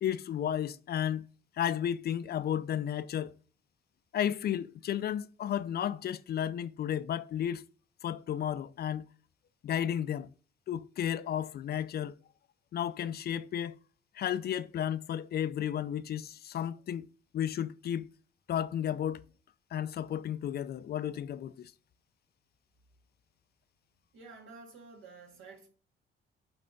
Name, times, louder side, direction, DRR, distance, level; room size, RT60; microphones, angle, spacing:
voice 1, 0.0-1.3 1.6-3.3 4.1-7.6 8.0-9.0 9.6-10.3 10.7-12.1 12.7-13.8 14.1-17.1 17.3-18.1 18.5-19.2 19.7-21.7, left 10 dB, 55° left, 0.4 m, -33 dB
voice 2, 24.1-25.7, right 4 dB, 75° right, 2.1 m, -51 dB
8.7 x 3.3 x 3.8 m
cardioid pair, 90°, 20 cm